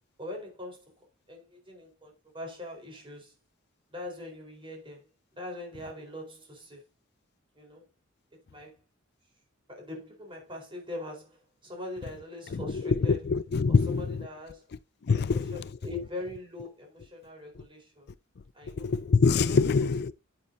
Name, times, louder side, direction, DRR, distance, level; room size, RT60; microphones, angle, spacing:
voice 1, 0.2-3.3 3.9-6.9 7.5-7.9 8.3-8.8 9.7-13.2 13.7-14.7 15.1-18.1 18.5-18.9 19.5-19.9, left 1 dB, 25° right, 4.1 m, -42 dB
voice 2, 12.5-14.2 15.1-15.7 18.7-20.1, left 4 dB, 55° left, 0.4 m, -25 dB
9.6 x 8.9 x 2.7 m
head